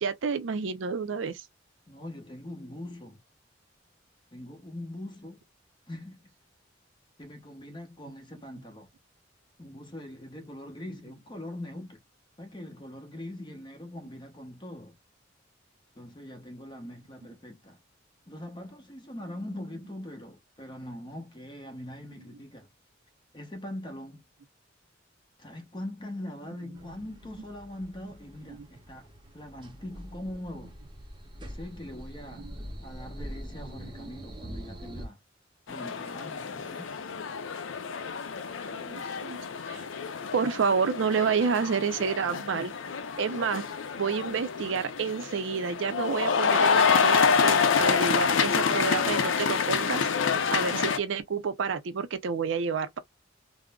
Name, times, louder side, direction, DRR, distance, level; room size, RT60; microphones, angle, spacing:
voice 1, 0.0-1.5 38.7-39.4 39.7-39.8 40.3-42.7 43.2-43.6 44.0-50.1 50.5-53.0, right 5 dB, 70° right, 0.5 m, -29 dB
voice 2, 1.9-3.2 4.3-5.4 5.9-6.2 7.2-8.9 9.6-12.0 12.4-15.0 15.9-17.8 18.3-22.7 23.3-24.2 25.4-30.8 31.4-32.5 32.8-35.2 35.7-36.9, left 1 dB, 25° left, 0.8 m, -42 dB
sound 1, 26.7-35.1, equal, 25° right, 0.7 m, -44 dB
sound 2, 35.7-51.0, left 6 dB, 75° left, 0.5 m, -27 dB
3.6 x 2.0 x 2.2 m
head